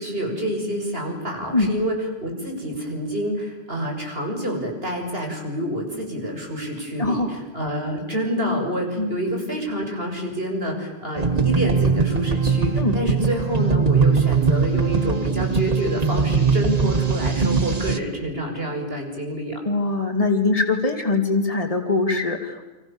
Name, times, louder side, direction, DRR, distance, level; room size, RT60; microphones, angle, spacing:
voice 1, 0.0-2.0 2.2-19.6, equal, 65° right, 2 dB, 6.9 m, -27 dB
voice 2, 7.0-7.4 9.0-9.1 12.8-13.0 19.6-22.7, left 3 dB, 35° left, 3 dB, 3.2 m, -22 dB
sound 1, 11.2-18.0, right 5 dB, 40° right, 1.5 m, -21 dB
29.0 x 26.5 x 7.3 m, 1.1 s
omnidirectional pair, 1.1 m